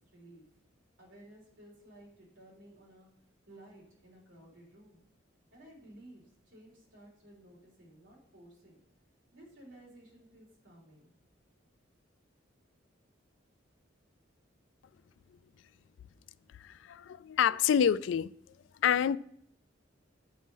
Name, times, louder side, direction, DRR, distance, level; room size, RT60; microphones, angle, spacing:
voice 1, 0.1-0.4 1.0-3.1 3.5-5.0 5.5-8.8 9.3-11.1, right 1 dB, 80° right, 3.5 m, -55 dB
voice 2, 16.6-18.3 18.8-19.2, left 8 dB, 80° left, 0.3 m, -27 dB
8.2 x 5.2 x 5.5 m
head